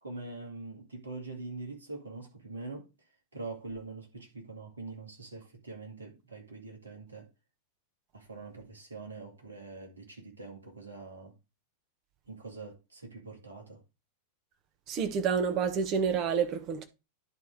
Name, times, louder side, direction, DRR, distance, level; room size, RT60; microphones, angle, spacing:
voice 1, 0.0-2.8 3.3-7.3 8.1-11.3 12.3-13.8, right 3 dB, 75° right, 2.2 m, -44 dB
voice 2, 14.9-16.9, right 6 dB, 35° right, 1.1 m, -28 dB
10.5 x 3.6 x 4.7 m
figure-of-eight pair, 90°, 0 cm